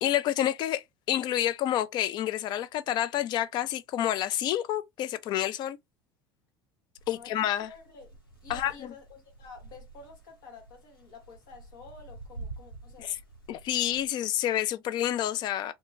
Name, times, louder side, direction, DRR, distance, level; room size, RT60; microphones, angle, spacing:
voice 1, 0.0-5.8 7.1-7.7 8.5-8.9 13.0-13.1 13.5-15.7, left 12 dB, 40° left, 0.4 m, -29 dB
sound 1, 7.0-14.1, right 3 dB, 85° left, 0.9 m, -47 dB
voice 2, 7.1-8.2 8.4-13.2, left 4 dB, 60° left, 1.3 m, -50 dB
2.9 x 2.2 x 2.6 m
figure-of-eight pair, 70°, 11 cm